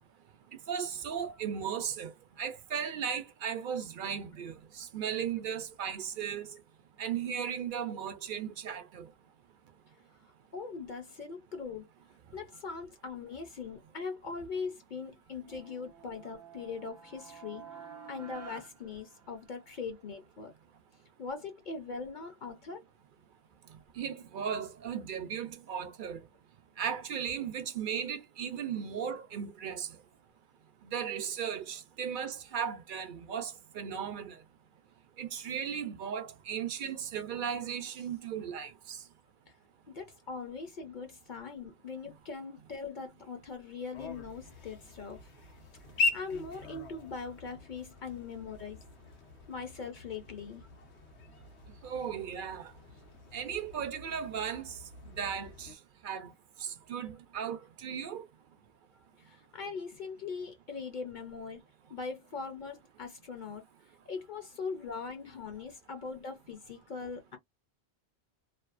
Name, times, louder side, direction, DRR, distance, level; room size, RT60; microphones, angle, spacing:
voice 1, 0.7-2.1 2.4-6.5 7.0-9.1 24.0-26.3 26.8-29.9 30.8-34.4 35.2-39.0 51.8-52.7 53.3-54.8 55.1-55.7 56.0-56.3 56.6-58.2, right 8 dB, 60° right, 0.6 m, -36 dB
voice 2, 10.2-11.9 12.3-17.8 18.1-20.5 21.2-22.8 39.5-39.6 39.9-45.2 46.0-48.8 49.5-50.7 59.2-61.6 61.9-63.6 64.1-67.4, left 5 dB, 55° left, 0.7 m, -41 dB
sound 1, 15.4-19.8, right 6 dB, 25° right, 0.3 m, -50 dB
sound 2, 43.9-55.7, left 4 dB, 90° left, 1.0 m, -41 dB
2.6 x 2.3 x 2.4 m
omnidirectional pair, 1.1 m